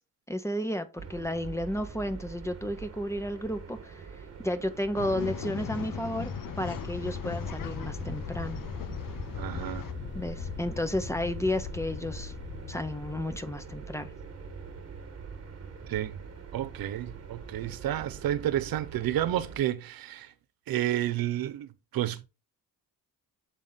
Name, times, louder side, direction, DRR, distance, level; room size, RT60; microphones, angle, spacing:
voice 1, 0.3-4.1 4.4-6.3 6.6-8.6 10.1-12.3 12.7-14.1, left 1 dB, 10° left, 0.9 m, -32 dB
sound 1, 1.0-19.6, right 6 dB, 45° right, 1.5 m, -44 dB
Male speech man speaking / Chatter / Rattle, 4.9-9.9, left 8 dB, 65° left, 0.8 m, -39 dB
sound 2, 4.9-14.8, left 6 dB, 30° left, 0.6 m, -41 dB
voice 2, 9.3-9.9 15.8-16.2 16.5-20.3 20.7-22.2, right 12 dB, 75° right, 0.8 m, -31 dB
8.0 x 3.6 x 4.0 m
cardioid pair, 105°, 36 cm